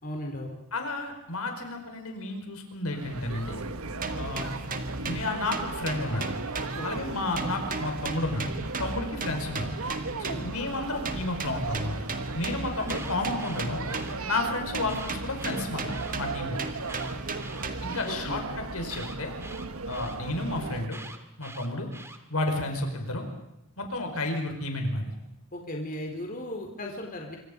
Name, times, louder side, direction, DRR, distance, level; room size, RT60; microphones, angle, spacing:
voice 1, 0.0-0.6 6.8-7.0 10.1-10.5 18.0-18.4 25.5-27.4, left 1 dB, 40° left, 1 dB, 4.0 m, -36 dB
voice 2, 0.7-3.6 4.1-4.5 5.0-6.3 6.8-8.5 8.8-9.7 10.2-11.9 12.3-13.8 14.3-16.6 17.8-18.4 18.7-19.3 19.9-21.0 21.4-21.9 22.3-23.3 23.8-25.1, left 2 dB, 75° left, 4 dB, 5.0 m, -31 dB
sound 1, 2.9-20.9, right 3 dB, 75° right, 1.4 m, -37 dB
sound 2, 4.0-7.1 7.4-10.6 11.0-14.4 14.7-18.1, right 3 dB, 40° right, 1.9 m, -36 dB
Alarm, 12.7-14.1 14.8-16.1 16.8-18.1 18.9-20.2 20.9-22.2, right 2 dB, 10° right, 2.1 m, -45 dB
26.5 x 24.5 x 5.2 m, 0.90 s
head